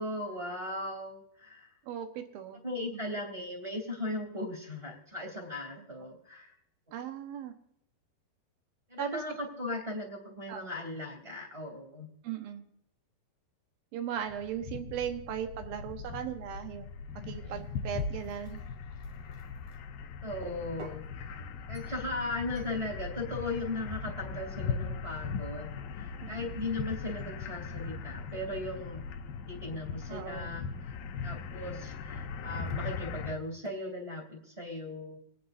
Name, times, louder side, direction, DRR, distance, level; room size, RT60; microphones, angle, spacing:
voice 1, 0.0-1.7 2.6-6.5 8.9-12.1 20.2-21.4 21.7-29.0 29.5-31.0 31.2-35.2, left 2 dB, 10° right, 1 dB, 2.4 m, -38 dB
voice 2, 1.9-2.6 2.9-3.0 6.9-7.5 9.0-9.1 10.5-10.6 12.2-12.7 13.9-16.9 17.2-18.6 26.2-26.6 30.1-30.5, right 9 dB, 70° right, 6 dB, 2.8 m, -38 dB
sound 1, 14.2-33.3, left 5 dB, 75° left, 2.6 m, -39 dB
sound 2, 17.5-19.8 20.4-21.1 21.8-22.1 22.6-22.8, right 2 dB, 50° right, 3.2 m, -53 dB
28.0 x 9.3 x 2.6 m, 0.74 s
omnidirectional pair, 4.6 m